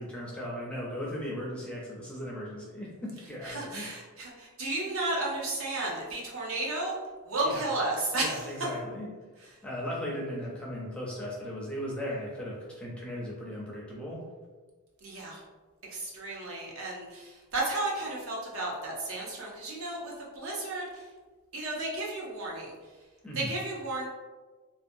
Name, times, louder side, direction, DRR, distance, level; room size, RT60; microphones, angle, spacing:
voice 1, 0.0-3.9 7.4-7.7 8.1-9.1 9.6-14.2 23.2-23.5, equal, 5° left, -5 dB, 0.4 m, -37 dB
voice 2, 3.4-6.9 7.3-8.4 15.0-15.4 15.9-21.0 21.5-22.7 23.3-24.0, right 2 dB, 65° right, -4 dB, 0.7 m, -33 dB
2.6 x 2.1 x 2.5 m, 1.3 s
head